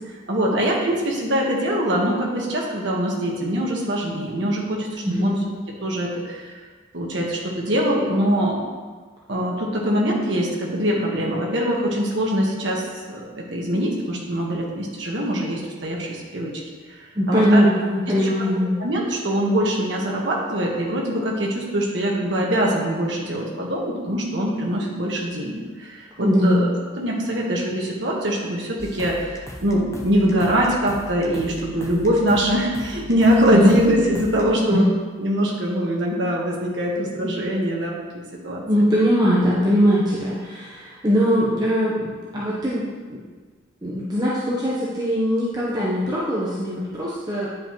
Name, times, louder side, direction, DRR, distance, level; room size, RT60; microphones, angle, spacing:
voice 1, 0.3-5.4 5.8-6.5 6.9-8.6 9.3-16.5 17.3-17.7 18.2-18.3 18.8-34.8 35.2-38.6, equal, 65° right, -2 dB, 1.3 m, -23 dB
voice 2, 5.0-5.3 17.2-18.7 26.2-26.6 33.5-33.8 34.7-34.9 38.7-42.8 43.1-43.2 43.8-47.5, equal, 20° right, -7 dB, 0.8 m, -21 dB
sound 1, 28.8-34.5, left 1 dB, 15° left, 0.6 m, -39 dB
9.7 x 5.2 x 3.0 m, 1.4 s
head